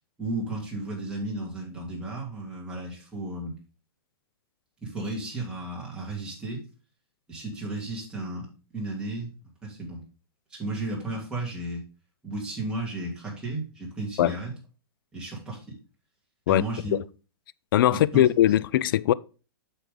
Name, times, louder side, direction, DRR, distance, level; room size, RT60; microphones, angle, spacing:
voice 1, 0.2-3.6 4.8-6.6 7.3-8.5 8.7-9.3 9.6-10.0 10.5-11.8 12.2-14.5 15.1-15.6 16.5-17.0 17.9-18.2, right 2 dB, 5° right, 2.9 m, -34 dB
voice 2, 17.7-19.1, left 12 dB, 55° left, 0.4 m, -20 dB
8.3 x 6.2 x 3.8 m
hypercardioid pair, 150°, 13 cm